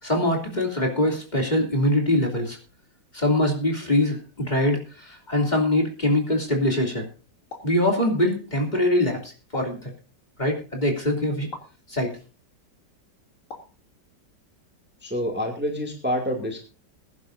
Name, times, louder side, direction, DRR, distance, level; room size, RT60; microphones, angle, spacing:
voice 1, 0.0-2.6 3.1-7.1 7.6-9.9 10.4-11.5 11.9-12.1, left 1 dB, 25° left, 1 dB, 3.1 m, -23 dB
sound 1, 7.5-7.8 9.5-9.9 11.5-11.8 13.5-13.8, left 3 dB, 45° left, 3.2 m, -41 dB
voice 2, 15.0-16.6, equal, 5° right, 2 dB, 2.3 m, -27 dB
21.5 x 11.0 x 2.7 m, 0.35 s
omnidirectional pair, 1.9 m